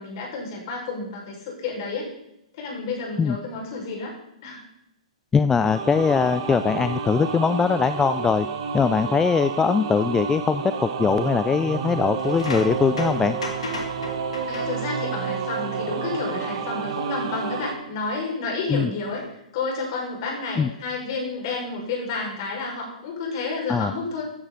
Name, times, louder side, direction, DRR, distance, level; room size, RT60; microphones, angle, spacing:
voice 1, 0.0-2.1 2.6-4.1 4.4-4.6 14.5-19.2 19.5-24.2, left 3 dB, 45° left, -1 dB, 5.9 m, -30 dB
voice 2, 5.3-8.5 8.7-13.4 18.7-18.9 20.6-20.7 23.7-23.9, left 5 dB, 10° left, 12 dB, 0.4 m, -21 dB
sound 1, 5.6-17.7, right 6 dB, 50° right, 2.0 m, -30 dB
sound 2, 12.2-15.1 15.5-15.8 17.4-17.5 19.0-19.3, left 4 dB, 65° left, 2.9 m, -36 dB
15.0 x 11.0 x 4.2 m, 0.82 s
figure-of-eight pair, 115°, 3 cm